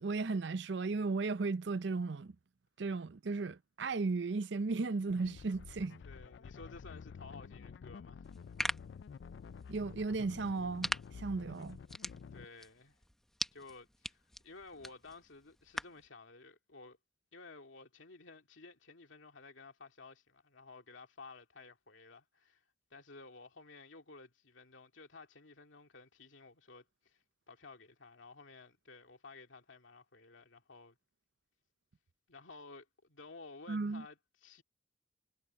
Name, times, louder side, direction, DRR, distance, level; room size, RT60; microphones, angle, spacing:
voice 1, 0.0-2.4 2.8-6.0 9.7-11.8 33.7-34.0, right 3 dB, 70° right, 0.5 m, -35 dB
sound 1, 5.1-12.4, left 6 dB, 65° left, 0.3 m, -50 dB
voice 2, 6.0-8.3 12.3-13.0 13.5-17.0 17.3-22.6 22.9-31.0 32.3-34.6, left 3 dB, 90° left, 2.6 m, -54 dB
sound 2, 8.2-16.1, equal, ahead, 0.8 m, -43 dB
head